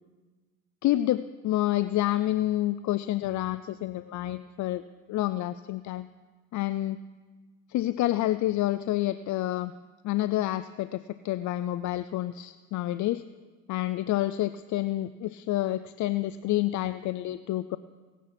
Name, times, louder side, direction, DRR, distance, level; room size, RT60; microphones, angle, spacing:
voice 1, 0.8-4.8 5.1-6.1 6.5-7.0 7.7-9.7 10.0-13.2 13.7-17.8, left 15 dB, 70° left, 14 dB, 0.5 m, -28 dB
17.0 x 9.2 x 5.9 m, 1.4 s
cardioid pair, 90°, 30 cm